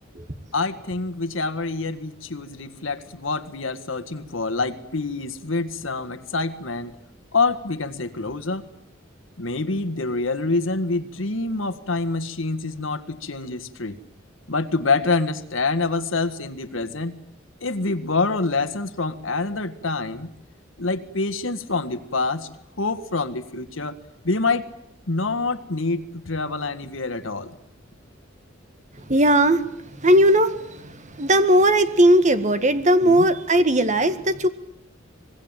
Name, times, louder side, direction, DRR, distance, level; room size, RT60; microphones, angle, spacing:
voice 1, 0.5-7.0 7.3-8.6 9.4-14.0 14.5-17.1 17.6-20.3 20.8-22.5 22.8-23.9 24.2-24.7 25.1-27.5 33.0-33.3, left 3 dB, 80° left, 10 dB, 1.7 m, -26 dB
voice 2, 29.1-29.6 30.0-34.5, right 1 dB, 40° right, 10 dB, 1.7 m, -18 dB
25.0 x 21.0 x 9.0 m, 0.76 s
head